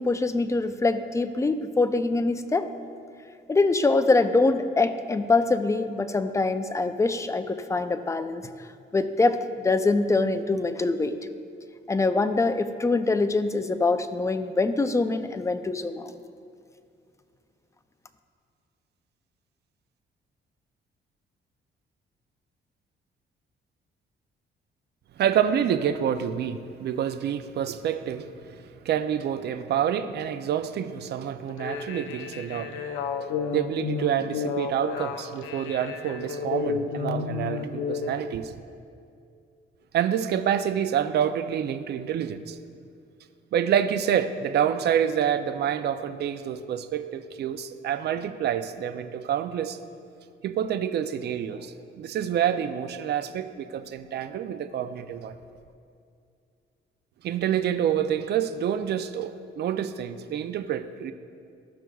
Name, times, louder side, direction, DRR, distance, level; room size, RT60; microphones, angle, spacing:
voice 1, 0.0-2.7 3.5-8.4 8.9-9.4 9.6-11.2 11.9-16.1, left 3 dB, 15° left, 10 dB, 0.4 m, -24 dB
voice 2, 25.2-28.3 28.8-32.8 33.5-38.6 39.9-42.6 43.5-49.8 50.4-55.4 57.2-61.1, right 9 dB, 55° right, 10 dB, 0.4 m, -27 dB
sound 1, 31.5-38.2, left 6 dB, 80° left, 0.6 m, -32 dB
14.0 x 5.9 x 2.3 m, 2.4 s
cardioid pair, 90°, 20 cm